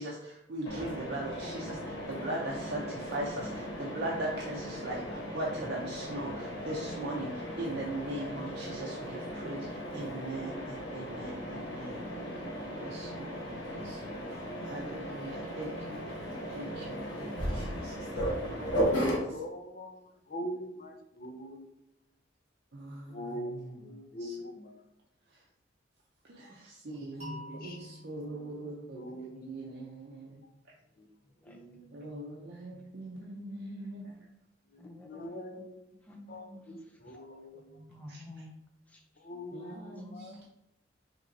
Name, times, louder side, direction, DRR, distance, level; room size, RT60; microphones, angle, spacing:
voice 1, 0.0-16.0 16.5-18.7 19.1-19.3 22.7-23.9 24.2-24.3 26.3-30.4 31.9-34.1 38.1-38.2 39.5-40.3, right 1 dB, 55° right, -3 dB, 0.6 m, -40 dB
Mechanisms, 0.6-19.2, equal, 75° left, 1.0 m, -36 dB
voice 2, 19.2-21.7 23.1-24.8 27.5-28.0 28.6-28.7 28.9-29.5 31.0-31.1 31.5-32.0 34.7-35.9 36.3-37.8 39.2-40.4, equal, 50° left, 4 dB, 0.6 m, -43 dB
sound 1, 27.2-30.1, left 1 dB, 40° right, 1.6 m, -48 dB
voice 3, 31.3-31.6 31.9-32.8 34.8-37.0 37.5-38.5 38.9-39.2 39.9-40.5, left 1 dB, 10° left, 0 dB, 0.6 m, -52 dB
5.4 x 3.0 x 2.7 m, 0.83 s
head